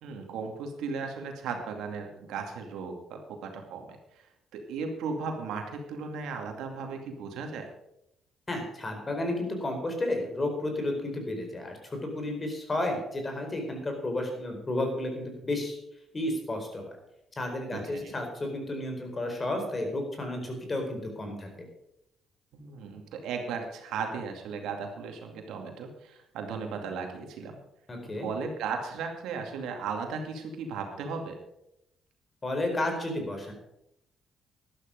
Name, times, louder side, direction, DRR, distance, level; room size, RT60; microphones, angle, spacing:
voice 1, 0.0-4.0 4.5-7.7 17.7-18.1 22.5-27.6 28.2-31.4, right 5 dB, 85° right, 3 dB, 2.4 m, -36 dB
voice 2, 8.5-15.8 16.1-16.8 17.4-21.5 27.9-28.3 32.4-33.5, left 1 dB, 30° left, 4 dB, 4.5 m, -32 dB
12.0 x 12.0 x 5.3 m, 0.82 s
cardioid pair, 90°, 0 cm